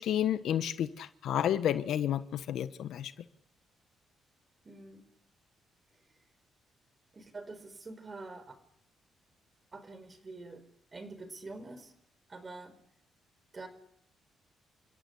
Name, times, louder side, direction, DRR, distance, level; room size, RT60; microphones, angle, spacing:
voice 1, 0.0-3.1, left 10 dB, 75° left, 11 dB, 1.3 m, -31 dB
voice 2, 4.6-5.0 6.0-6.1 7.1-8.6 9.7-10.6 10.9-11.9 12.3-12.7 13.5-13.7, right 3 dB, 30° right, 12 dB, 4.9 m, -46 dB
29.5 x 16.0 x 9.9 m, 0.78 s
cardioid pair, 90°, 0 cm